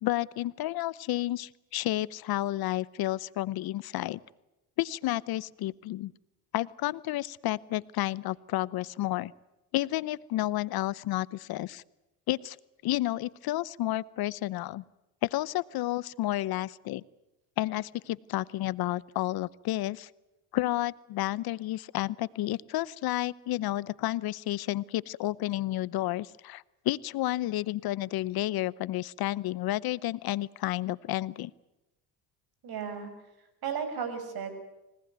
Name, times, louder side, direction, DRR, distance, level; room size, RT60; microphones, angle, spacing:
voice 1, 0.0-4.2 4.8-6.1 6.5-9.3 9.7-11.8 12.3-12.6 12.8-14.8 15.2-17.0 17.6-20.1 20.5-31.5, left 16 dB, 60° left, 20 dB, 0.8 m, -31 dB
voice 2, 32.6-33.1 33.4-34.5, right 7 dB, 60° right, 9 dB, 6.3 m, -35 dB
25.0 x 18.0 x 9.4 m, 0.97 s
supercardioid pair, 85°, 42 cm